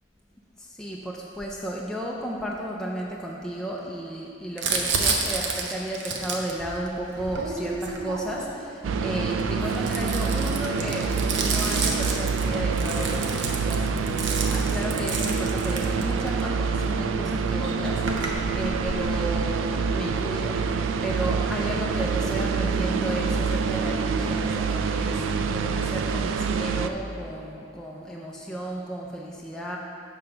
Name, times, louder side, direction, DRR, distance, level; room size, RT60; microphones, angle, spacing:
voice 1, 0.6-13.9 14.5-29.8, right 1 dB, 5° left, -4 dB, 0.4 m, -34 dB
Crumpling crinkling, 4.6-8.6 9.3-16.4 17.2-17.3 17.5-19.1, right 4 dB, 70° right, 0.7 m, -30 dB
sound 1, 8.8-26.9, right 5 dB, 90° right, 0.3 m, -26 dB
7.0 x 3.8 x 5.7 m, 2.5 s
head